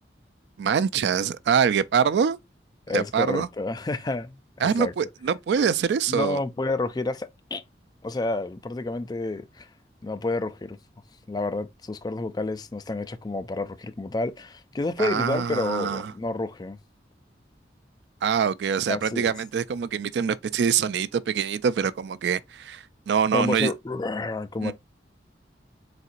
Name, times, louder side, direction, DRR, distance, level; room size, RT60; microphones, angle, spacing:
voice 1, 0.6-2.4 2.9-3.5 4.6-6.4 15.0-16.1 18.2-23.7 24.6-24.7, right 7 dB, 70° right, 0.3 m, -24 dB
voice 2, 2.9-4.9 6.1-7.6 8.0-9.7 10.0-10.8 11.3-16.8 18.9-19.3 23.3-24.7, left 2 dB, 25° left, 0.3 m, -29 dB
4.2 x 3.7 x 2.5 m
head